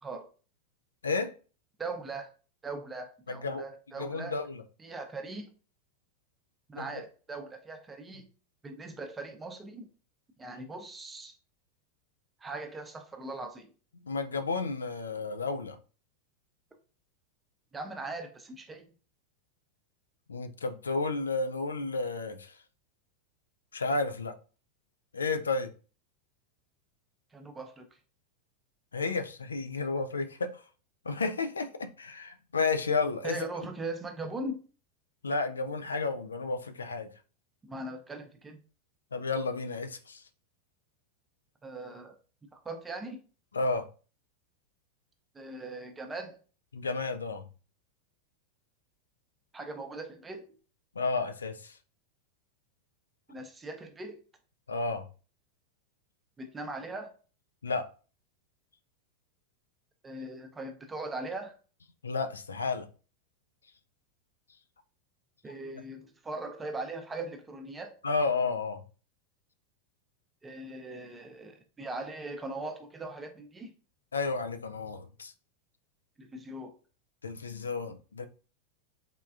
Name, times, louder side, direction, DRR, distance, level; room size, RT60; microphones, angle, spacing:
voice 1, 1.0-1.3 3.3-3.6 4.0-4.6 6.8-6.9 14.0-15.8 20.3-22.5 23.7-24.3 25.1-25.7 28.9-30.6 31.1-33.4 35.2-37.1 39.1-40.2 43.5-43.9 46.7-47.5 51.0-51.7 54.7-55.1 57.6-57.9 62.0-62.9 68.0-68.8 74.1-75.3 77.2-78.3, left 3 dB, 80° left, 0.3 m, -32 dB
voice 2, 1.8-2.3 2.6-4.4 4.8-5.5 6.7-8.2 8.6-9.9 10.4-11.4 12.4-13.7 17.7-18.8 27.3-27.9 33.2-34.6 37.6-38.6 41.6-42.2 42.5-43.2 45.3-46.4 49.5-50.5 53.3-54.2 56.4-57.1 60.0-61.6 65.4-68.0 70.4-73.7 76.2-76.7, right 2 dB, 15° right, 0.5 m, -40 dB
3.5 x 2.3 x 2.4 m
figure-of-eight pair, 90°, 0 cm